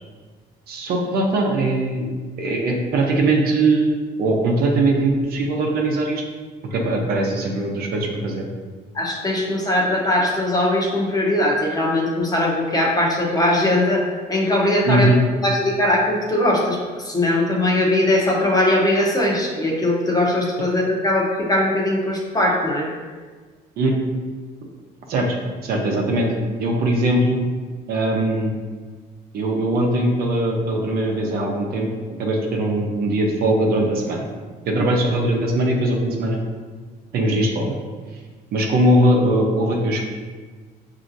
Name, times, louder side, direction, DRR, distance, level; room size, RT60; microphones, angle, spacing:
voice 1, 0.7-6.2 6.7-8.5 14.9-15.2 23.8-23.9 25.1-25.4 25.6-26.3 26.6-27.4 27.9-28.6 29.3-31.9 32.2-34.3 34.7-36.4 37.1-37.8 38.5-40.0, right 1 dB, 65° right, 0 dB, 0.8 m, -20 dB
voice 2, 8.9-14.0 14.3-15.1 15.4-22.9, left 1 dB, 20° left, -2 dB, 0.9 m, -20 dB
5.7 x 2.8 x 2.6 m, 1.5 s
cardioid pair, 110°, 17 cm